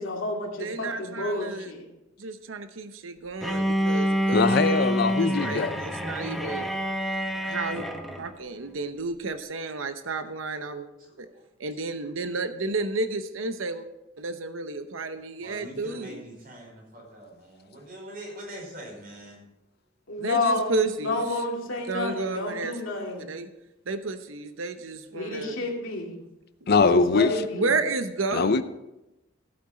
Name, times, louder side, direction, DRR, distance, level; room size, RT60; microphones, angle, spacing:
voice 1, 0.0-1.8 20.1-23.3 25.1-26.2 26.8-27.7, left 2 dB, 80° left, 0 dB, 2.6 m, -30 dB
voice 2, 0.6-1.7 2.2-4.8 5.2-6.7 7.4-7.9 8.2-10.9 11.2-11.3 11.6-13.9 14.2-16.2 20.2-21.2 21.8-22.8 23.2-23.5 23.9-25.7 26.6-26.9 27.5-28.6, right 3 dB, 85° right, 9 dB, 0.8 m, -32 dB
Bowed string instrument, 3.4-8.3, equal, ahead, 0.9 m, -27 dB
voice 3, 4.3-5.8 26.7-27.3 28.3-28.6, left 4 dB, 55° left, 13 dB, 0.5 m, -22 dB
voice 4, 11.0-11.4 12.0-12.3 15.4-19.4, equal, 50° right, -1 dB, 5.2 m, -44 dB
15.5 x 8.7 x 4.3 m, 0.95 s
head